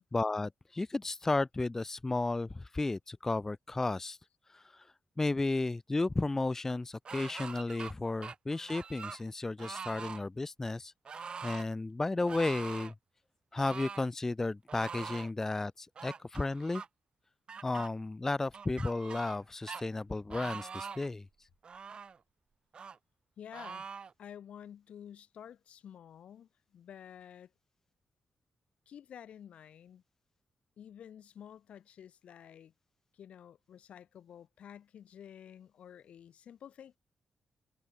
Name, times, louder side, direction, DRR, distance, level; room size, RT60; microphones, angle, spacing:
voice 1, 0.1-4.2 4.5-4.9 5.2-12.9 13.5-16.8 17.6-21.3, left 2 dB, 20° left, 0.3 m, -33 dB
sound 1, 7.1-7.9 8.2-9.2 9.6-10.2 11.1-11.7 12.3-12.9 13.6-14.1 14.7-15.3 16.0-16.9 17.5-17.9 18.5-19.4 19.7-19.8 20.3-21.1 21.6-22.2 22.7-23.0 23.5-24.1, right 6 dB, 50° right, 0.5 m, -43 dB
voice 2, 23.4-23.9 24.2-27.5 28.9-30.0 30.8-32.7 33.1-37.0, left 9 dB, 80° left, 1.6 m, -51 dB
cardioid pair, 80°, 2 cm